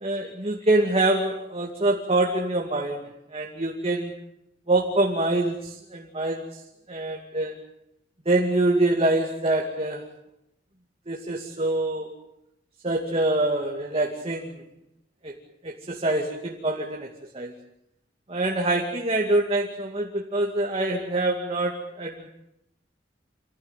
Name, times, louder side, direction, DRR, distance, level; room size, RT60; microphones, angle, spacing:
voice 1, 0.0-3.0 3.3-4.1 4.7-6.5 6.9-7.6 8.3-10.0 11.1-12.1 12.8-14.6 15.2-15.3 15.6-17.1 17.3-17.5 18.3-22.3, right 2 dB, 35° right, 0 dB, 2.5 m, -25 dB
27.0 x 18.0 x 9.2 m, 0.83 s
head